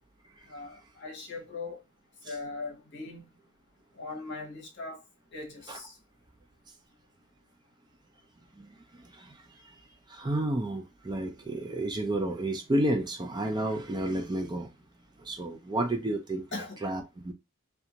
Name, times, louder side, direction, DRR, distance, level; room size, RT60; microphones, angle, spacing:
voice 1, 0.5-1.8 2.2-3.3 4.0-5.0 5.3-5.9 16.5-16.8, left 3 dB, 55° left, 0.9 m, -40 dB
voice 2, 8.6-9.4 9.6-9.8 10.1-14.7 15.2-16.4 16.8-17.3, right 1 dB, 20° right, 0.4 m, -31 dB
2.5 x 2.3 x 2.8 m
head